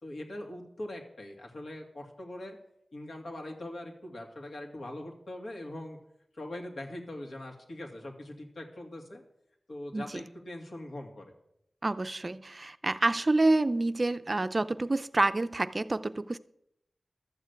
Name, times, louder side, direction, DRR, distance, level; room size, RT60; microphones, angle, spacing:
voice 1, 0.0-2.6 2.9-6.0 6.4-9.2 9.7-11.2, left 1 dB, 75° left, 1 dB, 2.4 m, -42 dB
voice 2, 11.8-16.4, right 2 dB, 35° right, 12 dB, 0.4 m, -28 dB
12.5 x 6.5 x 8.2 m, 0.78 s
wide cardioid pair, 85°, 0 cm